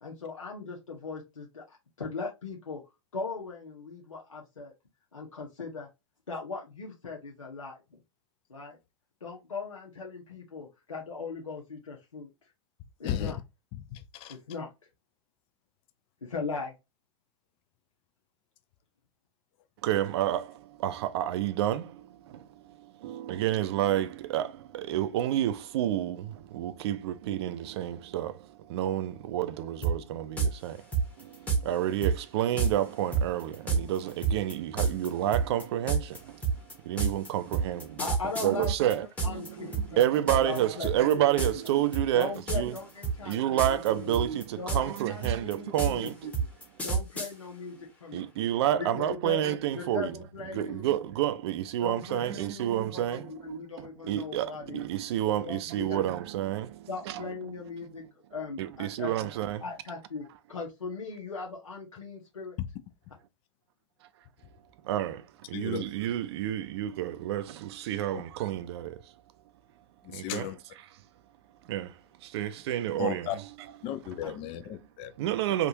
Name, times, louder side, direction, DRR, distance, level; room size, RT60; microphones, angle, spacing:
voice 1, 0.0-2.8 3.1-4.7 5.1-5.9 6.3-8.0 8.5-8.8 9.2-12.3 13.0-13.4 14.3-14.7 16.2-16.7 38.0-38.9 39.2-40.0 40.4-41.3 41.5-41.6 42.1-44.2 44.6-46.1 46.8-48.3 48.8-50.8 51.8-54.8 55.4-56.0 56.9-58.0 58.3-59.2 59.6-62.6, left 4 dB, 90° left, 0.9 m, -39 dB
voice 2, 13.0-13.4 13.7-14.4 62.6-62.7 65.5-65.9 68.1-68.2 70.0-70.6 73.0-73.4 73.8-75.1, left 11 dB, 35° left, 0.5 m, -35 dB
voice 3, 19.8-30.9 31.2-38.0 38.4-42.7 43.2-46.3 47.7-47.8 48.1-50.2 50.5-57.3 58.6-59.6 64.8-69.1 70.1-70.5 71.6-73.3 75.2-75.7, right 12 dB, 55° right, 0.5 m, -30 dB
sound 1, 29.8-29.9 30.4-30.5 30.9-31.6 32.0-32.1 32.6-32.7 33.1-39.5 39.7-40.6 40.8-41.1 41.4-41.7 41.9-42.8 43.0-43.9 44.1-47.3, right 5 dB, 10° left, 1.1 m, -28 dB
3.6 x 2.4 x 2.8 m
hypercardioid pair, 105°, 16 cm